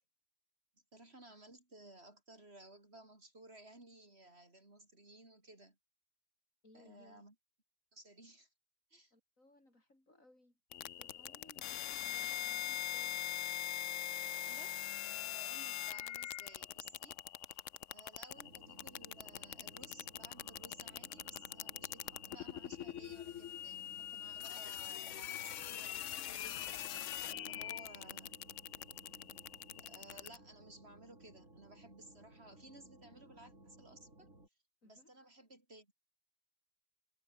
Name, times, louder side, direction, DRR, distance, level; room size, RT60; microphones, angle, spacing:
voice 1, 0.9-5.8 6.7-7.3 7.9-8.5 8.9-9.1 14.2-26.5 27.3-28.4 29.9-34.3 34.8-35.9, right 1 dB, 50° right, 4.7 m, -58 dB
voice 2, 6.6-7.2 9.1-10.6 10.9-13.2 27.5-27.8 34.8-35.1, left 1 dB, 85° left, 8.2 m, -65 dB
sound 1, 10.7-30.4, left 11 dB, 70° left, 1.0 m, -42 dB
sound 2, 18.3-34.5, right 1 dB, 75° right, 7.7 m, -60 dB
omnidirectional pair, 1.4 m